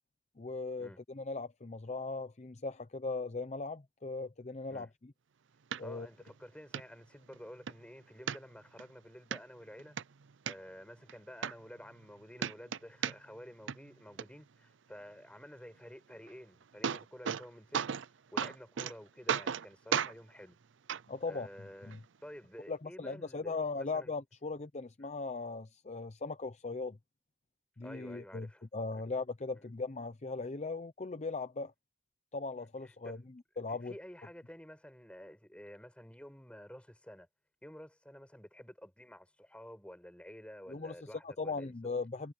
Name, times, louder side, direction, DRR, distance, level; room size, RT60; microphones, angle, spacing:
voice 1, 0.4-4.9 5.8-6.1 21.1-21.5 21.9-22.0 22.7-27.0 27.8-31.7 32.3-33.2 33.6-33.9 40.7-40.9 41.2-42.3, left 3 dB, 35° left, 0.7 m, -38 dB
sound 1, 5.7-5.8 6.3-6.4 6.7-6.8 7.3-7.8 8.3-8.8 9.3-9.4 9.8-10.5 11.1-11.2 11.4-12.1 12.4-13.4 13.7-14.2 16.3-16.4 16.6-17.4 17.7-18.1 18.4-18.9 19.3-19.6 19.9-20.1 20.9-21.0 21.9-22.0, right 7 dB, 80° right, 0.5 m, -34 dB
voice 2, 5.8-10.0 10.4-18.0 18.3-20.6 21.3-24.1 25.0-25.1 27.8-28.6 29.6-29.7 32.8-33.3 33.7-37.3 37.6-41.8, equal, 5° left, 7.9 m, -51 dB
head